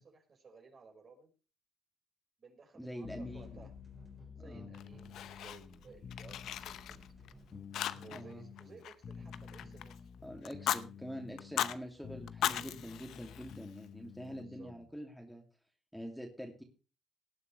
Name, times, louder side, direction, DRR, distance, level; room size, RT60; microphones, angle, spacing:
voice 1, 0.0-1.3 2.4-3.7 4.3-7.1 8.0-10.1 14.4-14.7, right 4 dB, 45° right, 3 dB, 5.1 m, -57 dB
voice 2, 2.7-3.6 4.4-4.7 8.1-8.5 10.2-15.4 15.9-16.6, equal, ahead, 3 dB, 2.6 m, -45 dB
sound 1, 3.0-14.9, left 7 dB, 50° left, 1.0 m, -51 dB
sound 2, 3.3-10.0, right 2 dB, 25° right, 4.1 m, -59 dB
Fire, 4.7-5.8 6.1-7.3 7.7-8.3 8.6-10.0 10.4-10.8 11.4-11.8 12.3-13.8, left 11 dB, 80° left, 0.8 m, -37 dB
18.5 x 9.7 x 3.3 m, 0.33 s
cardioid pair, 90°, 0 cm